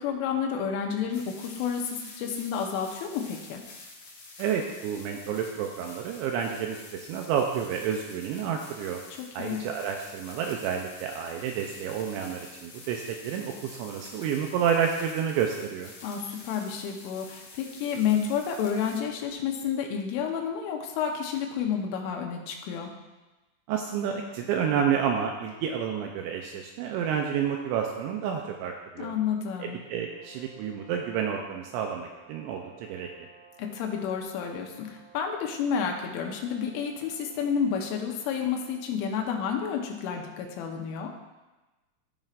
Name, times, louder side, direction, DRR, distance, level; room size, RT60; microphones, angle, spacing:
voice 1, 0.0-3.6 9.2-9.6 16.0-22.9 29.0-29.8 33.6-41.1, left 7 dB, 80° left, 2 dB, 3.3 m, -30 dB
sound 1, 1.1-19.0, left 3 dB, 50° left, 2.1 m, -48 dB
voice 2, 4.4-9.0 9.3-15.9 23.7-29.1 29.6-33.1, right 8 dB, 85° right, 2 dB, 2.7 m, -30 dB
sound 2, 30.0-38.9, right 7 dB, 40° right, 1.8 m, -55 dB
15.0 x 5.4 x 2.5 m, 1.1 s
omnidirectional pair, 5.6 m